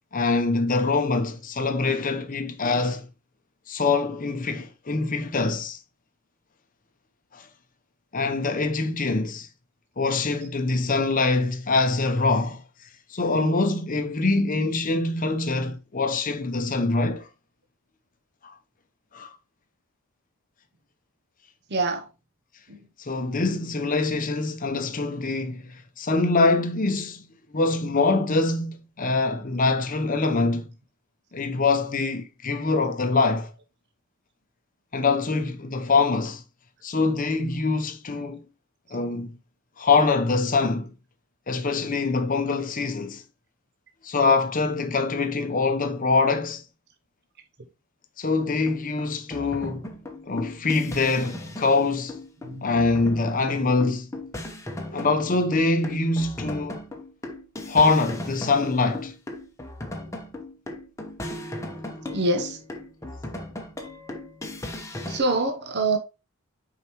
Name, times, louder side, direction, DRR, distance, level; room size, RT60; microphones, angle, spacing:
voice 1, 0.1-3.1 3.7-5.8 7.3-7.5 8.1-9.5 10.0-12.6 13.1-17.3 18.4-18.6 19.1-19.4 23.0-27.2 27.5-30.7 31.3-33.5 34.9-36.4 36.8-38.4 38.9-39.4 39.8-40.9 41.5-43.2 44.0-46.6 48.2-49.9 50.3-52.2 52.6-54.1 54.9-56.8 57.7-59.1, left 3 dB, 40° left, 0.8 m, -24 dB
voice 2, 21.7-22.1 22.7-22.8 49.4-49.5 52.4-52.7 62.1-62.6 65.1-66.0, right 2 dB, 50° right, 0.8 m, -25 dB
sound 1, 48.4-65.2, left 1 dB, 15° left, 0.9 m, -37 dB
6.7 x 4.8 x 3.0 m
head